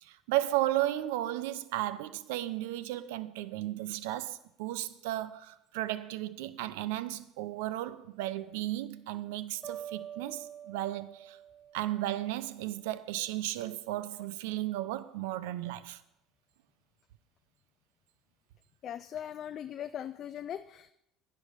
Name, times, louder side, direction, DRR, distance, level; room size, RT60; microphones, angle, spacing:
voice 1, 0.0-11.4 11.7-16.0, right 15 dB, 85° right, 0.7 m, -34 dB
sound 1, 9.6-12.7, right 9 dB, 20° right, 1.1 m, -46 dB
voice 2, 18.8-20.9, left 10 dB, 50° left, 0.5 m, -40 dB
10.5 x 10.5 x 5.3 m
supercardioid pair, 95°, 0 cm